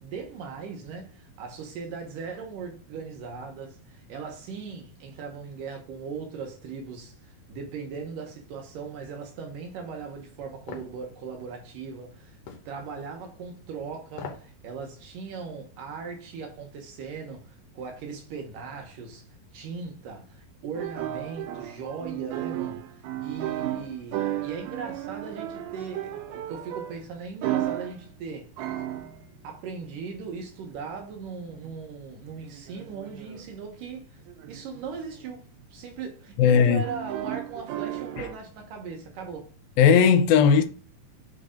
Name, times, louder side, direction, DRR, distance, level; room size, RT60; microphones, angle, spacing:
voice 1, 0.0-12.4 12.7-19.2 19.5-28.5 29.4-34.2 34.5-39.5, right 5 dB, 70° right, 2.5 m, -39 dB
sound 1, 10.7-10.9 12.5-12.7 14.1-14.5 14.9-15.0, left 5 dB, 65° left, 1.9 m, -39 dB
sound 2, 20.7-27.1 27.4-28.0 28.5-29.6 30.2-30.7 31.5-31.8 32.4-33.5 34.3-34.8 35.2-35.3 35.6-35.7 36.8-38.4, right 13 dB, 85° right, 2.5 m, -34 dB
voice 2, 36.4-36.8 38.2-38.3 39.8-40.6, left 7 dB, 80° left, 2.4 m, -17 dB
6.3 x 3.4 x 5.0 m
omnidirectional pair, 4.2 m